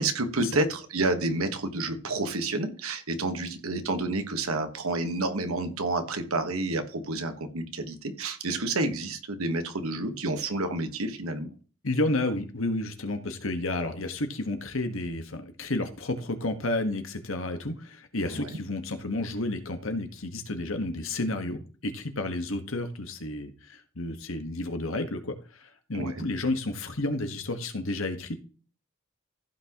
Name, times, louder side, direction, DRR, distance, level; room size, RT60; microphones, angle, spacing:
voice 1, 0.0-11.5 18.3-18.6 25.9-26.3, right 2 dB, 85° right, 8 dB, 1.4 m, -29 dB
voice 2, 11.8-28.4, left 2 dB, 70° left, 7 dB, 1.5 m, -31 dB
15.0 x 6.0 x 3.0 m, 0.38 s
head